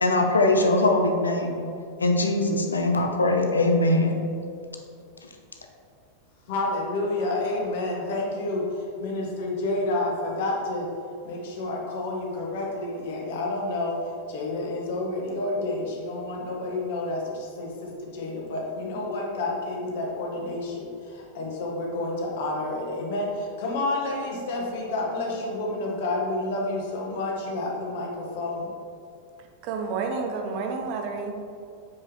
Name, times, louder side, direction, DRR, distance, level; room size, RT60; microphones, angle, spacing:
voice 1, 0.0-1.7 2.0-4.2, left 2 dB, 75° left, 3 dB, 0.6 m, -21 dB
voice 2, 6.5-10.9 11.2-14.0 14.3-28.7, left 2 dB, 55° left, -1 dB, 1.2 m, -29 dB
voice 3, 29.6-31.3, right 4 dB, 45° right, 3 dB, 0.8 m, -30 dB
7.3 x 4.9 x 3.0 m, 2.4 s
figure-of-eight pair, 90°, 0 cm